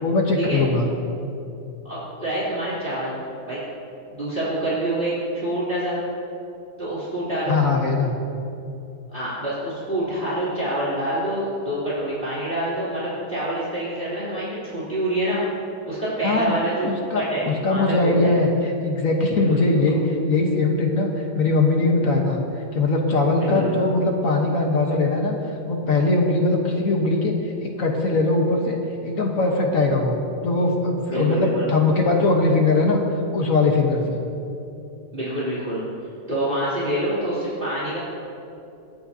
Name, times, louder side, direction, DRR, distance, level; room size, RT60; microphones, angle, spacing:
voice 1, 0.0-0.9 7.5-8.2 16.2-16.6 16.8-22.4 22.7-25.4 25.7-28.8 29.0-30.2 30.4-33.0 33.3-34.2, left 3 dB, 55° left, 1 dB, 1.5 m, -21 dB
voice 2, 1.8-3.2 3.5-3.6 4.1-6.0 6.8-7.6 9.1-15.4 15.8-18.3 19.3-19.7 23.4-23.8 31.1-31.7 35.1-35.8 36.3-38.0, right 1 dB, 30° right, -10 dB, 3.5 m, -26 dB
26.5 x 8.9 x 2.8 m, 2.8 s
omnidirectional pair, 1.8 m